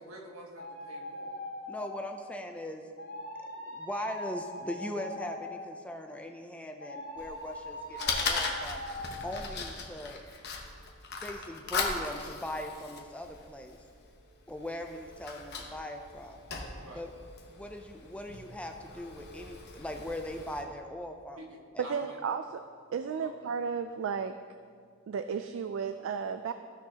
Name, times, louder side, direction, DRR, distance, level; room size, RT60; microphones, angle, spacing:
voice 1, 0.0-1.4 16.8-17.0 21.4-22.2 23.2-23.3, right 1 dB, 85° right, 0 dB, 1.4 m, -48 dB
sound 1, 0.6-2.3 3.0-5.9 6.8-9.5, left 1 dB, 70° left, 2.0 m, -41 dB
voice 2, 1.7-2.9 3.7-8.8 9.2-10.2 11.2-13.8 14.5-16.4 16.9-17.1 17.5-21.4 21.7-21.8, left 1 dB, 5° left, 4 dB, 0.4 m, -40 dB
Fire, 7.2-20.6, left 4 dB, 50° left, 1.0 m, -39 dB
voice 3, 21.8-22.6 22.9-24.3 25.1-26.5, right 6 dB, 65° right, 9 dB, 0.3 m, -33 dB
15.0 x 6.3 x 2.9 m, 2.1 s
head